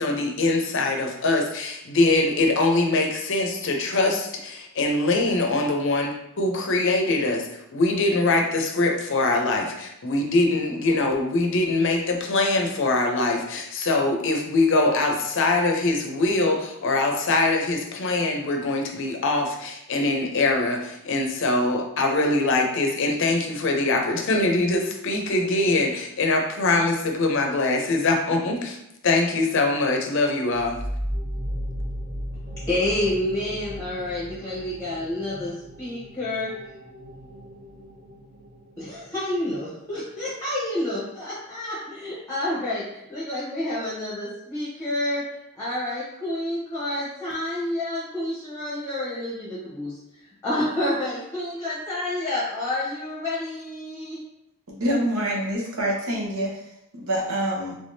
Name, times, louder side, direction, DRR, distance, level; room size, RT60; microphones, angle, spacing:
voice 1, 0.0-28.8 29.0-30.8, left 2 dB, 55° left, 2 dB, 0.6 m, -23 dB
sound 1, 30.5-39.8, equal, 40° right, 0.6 m, -36 dB
voice 2, 32.7-36.5 38.8-45.2 45.5-54.2, left 1 dB, 15° left, -8 dB, 0.9 m, -29 dB
voice 3, 54.7-56.6 56.9-57.7, right 1 dB, 65° right, -2 dB, 0.9 m, -26 dB
3.4 x 3.3 x 2.7 m, 0.84 s
head